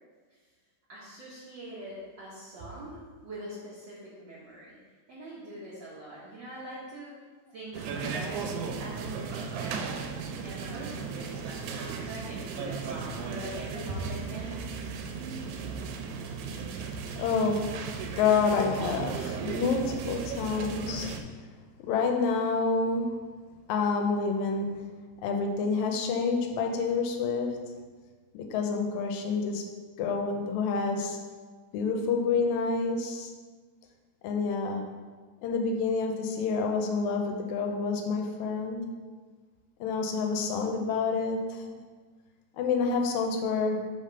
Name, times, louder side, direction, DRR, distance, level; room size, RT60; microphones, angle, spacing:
voice 1, 0.9-4.8 5.1-10.1 10.4-14.6, right 1 dB, 65° right, -8 dB, 1.1 m, -42 dB
sound 1, 7.7-21.2, right 5 dB, 90° right, 2.0 m, -36 dB
voice 2, 17.2-17.7 18.2-21.1 21.8-23.3 23.7-24.8 25.2-27.7 28.3-29.6 30.0-31.2 31.7-33.3 34.2-34.8 35.4-38.9 39.8-41.8 42.5-43.8, left 4 dB, 80° left, 3 dB, 2.0 m, -28 dB
5.1 x 3.5 x 5.5 m, 1.5 s
omnidirectional pair, 3.4 m